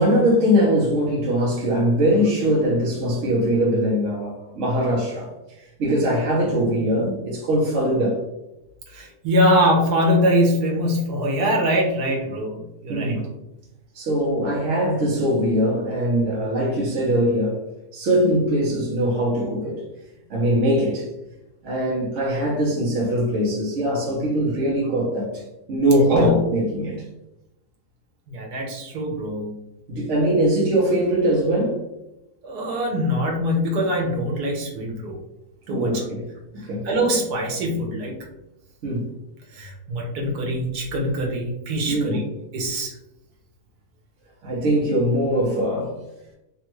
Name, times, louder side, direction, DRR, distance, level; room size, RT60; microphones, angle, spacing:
voice 1, 0.0-5.3 5.8-8.2 12.9-13.3 13.9-17.6 17.9-19.8 20.3-21.1 21.6-25.4 25.7-27.0 29.9-31.8 35.7-36.3 36.5-36.9 38.8-39.1 41.9-42.2 44.4-46.0, equal, 60° right, -4 dB, 1.0 m, -21 dB
voice 2, 8.9-13.2 26.1-26.4 28.3-29.5 32.4-35.2 35.7-36.0 36.8-38.2 39.5-42.2 42.5-42.9, equal, 90° right, 0 dB, 1.3 m, -23 dB
3.4 x 2.3 x 3.0 m, 0.91 s
omnidirectional pair, 1.6 m